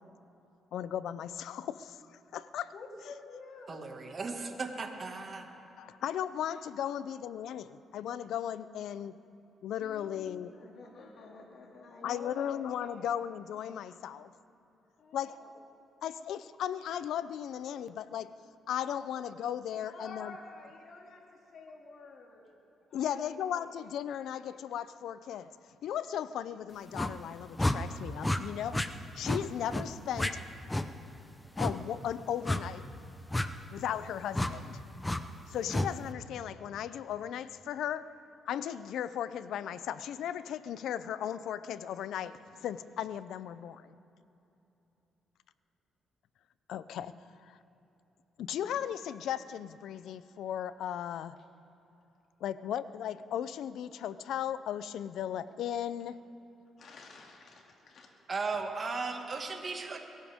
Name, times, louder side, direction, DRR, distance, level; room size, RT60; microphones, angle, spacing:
voice 1, 0.7-2.7 5.8-9.2 9.6-10.5 12.0-14.3 15.1-15.4 16.0-18.4 18.7-20.4 22.9-25.6 25.8-28.9 29.1-30.4 31.6-32.9 33.7-34.8 35.1-38.2 38.5-44.0 46.7-47.1 47.4-47.6 48.4-51.4 52.4-56.2, left 10 dB, 75° left, 15 dB, 0.5 m, -36 dB
voice 2, 2.7-3.9 6.4-6.6 9.8-13.2 15.0-15.5 19.7-22.5 22.9-23.3 23.6-23.8 56.8-58.1, left 3 dB, 60° left, -1 dB, 2.5 m, -49 dB
voice 3, 3.7-5.5 58.3-60.0, right 4 dB, 40° right, 3 dB, 1.9 m, -36 dB
sound 1, 26.9-27.1 27.6-27.8 28.2-28.4 28.7-28.9 29.2-29.4 29.7-29.9 30.2-30.3 30.7-30.9 31.6-31.7 32.4-32.6 33.3-33.5 34.3-34.5 35.0-35.2 35.7-35.9, left 1 dB, 10° left, 0.7 m, -30 dB
23.0 x 16.0 x 3.6 m, 2.9 s
cardioid pair, 90°, 0 cm